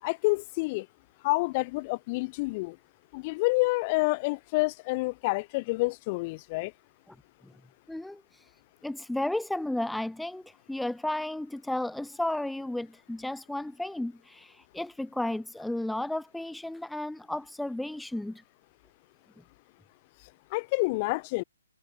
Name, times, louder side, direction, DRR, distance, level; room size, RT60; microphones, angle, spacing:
voice 1, 0.0-0.9 1.2-2.8 3.1-6.7 20.5-21.4, left 25 dB, 25° left, 3.2 m, -28 dB
voice 2, 7.9-8.5 8.8-18.4, left 1 dB, ahead, 0.7 m, -33 dB
hypercardioid pair, 160°, 0 cm